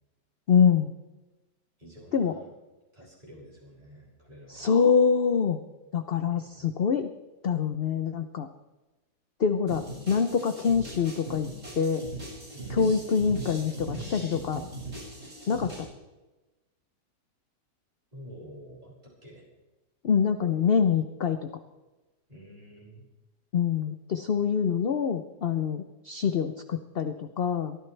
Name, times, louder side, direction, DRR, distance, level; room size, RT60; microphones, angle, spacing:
voice 1, 0.5-0.9 2.1-2.3 4.5-5.6 5.9-7.1 7.4-8.5 9.4-11.5 11.8-12.0 12.7-14.6 15.5-15.7 20.0-21.4 23.5-27.8, left 6 dB, 55° left, 8 dB, 0.7 m, -25 dB
voice 2, 1.8-2.5 2.9-4.7 6.3-6.6 12.5-12.9 18.1-19.4 22.3-23.1, equal, 20° right, -5 dB, 6.5 m, -49 dB
sound 1, 9.7-15.9, right 1 dB, 45° right, 7.4 m, -40 dB
23.0 x 14.5 x 3.4 m, 1.1 s
omnidirectional pair, 1.8 m